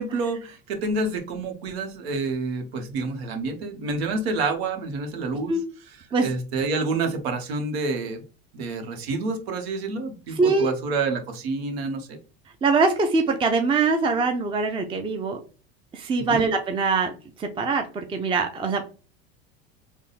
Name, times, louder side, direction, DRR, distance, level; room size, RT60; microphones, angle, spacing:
voice 1, 0.0-8.2 8.5-12.2 16.2-16.4, right 3 dB, 85° right, 5 dB, 1.2 m, -28 dB
voice 2, 10.4-10.7 12.6-15.4 15.9-17.1 17.4-17.8 18.1-18.8, right 4 dB, 15° right, 5 dB, 0.5 m, -22 dB
3.6 x 2.2 x 4.0 m, 0.35 s
supercardioid pair, 110°, 30 cm